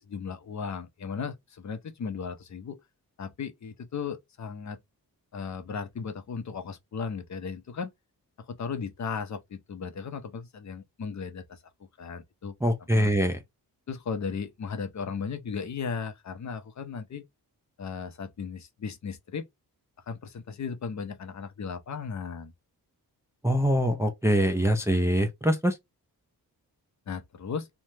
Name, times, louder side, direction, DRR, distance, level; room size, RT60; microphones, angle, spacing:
voice 1, 0.0-2.8 3.2-4.8 5.3-7.9 8.4-13.1 13.9-17.2 17.8-19.5 20.1-22.5 27.1-27.7, left 6 dB, 50° left, 0.5 m, -36 dB
voice 2, 12.6-13.4 23.4-25.7, equal, 10° right, 0.4 m, -24 dB
3.2 x 2.1 x 2.7 m
wide cardioid pair, 110°, 38 cm